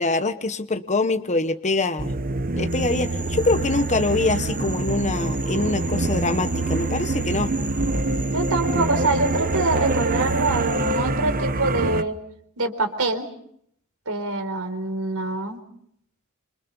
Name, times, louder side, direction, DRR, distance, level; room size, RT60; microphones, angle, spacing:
voice 1, 0.0-2.1 2.6-7.5, left 3 dB, 35° left, 8 dB, 1.2 m, -24 dB
sound 1, 2.0-12.0, right 2 dB, 40° right, 1.0 m, -25 dB
Frog, 2.7-11.0, right 2 dB, 10° right, 8.0 m, -38 dB
voice 2, 8.3-12.2 12.6-13.3 14.1-15.6, right 2 dB, 80° right, 8 dB, 4.2 m, -25 dB
28.0 x 27.0 x 5.6 m, 0.70 s
head